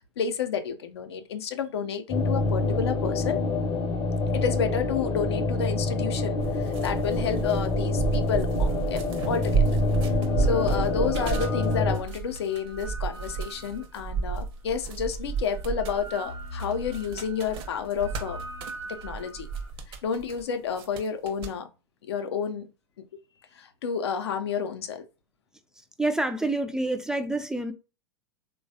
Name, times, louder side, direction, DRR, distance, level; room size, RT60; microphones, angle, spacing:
voice 1, 0.2-3.4 4.3-9.6 10.4-18.4 18.9-19.5 20.0-21.7 22.1-22.7 23.0-23.1 23.6-25.0, left 7 dB, 75° left, 0.5 m, -30 dB
sound 1, 2.1-12.0, left 3 dB, 30° left, 0.6 m, -27 dB
sound 2, 6.4-20.4 20.8-21.5, right 6 dB, 40° right, 0.7 m, -31 dB
sound 3, 10.0-14.3 15.0-19.7, right 1 dB, 85° right, 0.8 m, -42 dB
voice 2, 26.0-27.7, right 2 dB, 5° right, 0.3 m, -27 dB
3.2 x 2.2 x 2.6 m
hypercardioid pair, 95°, 14 cm